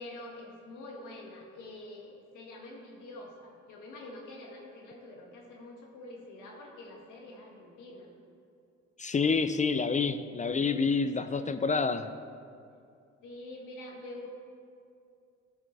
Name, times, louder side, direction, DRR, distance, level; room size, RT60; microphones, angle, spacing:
voice 1, 0.0-8.1 10.9-11.0 11.3-11.5 12.7-12.8 13.2-14.3, left 2 dB, 85° left, -2 dB, 1.9 m, -46 dB
voice 2, 9.0-12.1, left 4 dB, 25° left, 10 dB, 0.4 m, -28 dB
14.0 x 6.3 x 3.3 m, 2.4 s
cardioid pair, 90°, 30 cm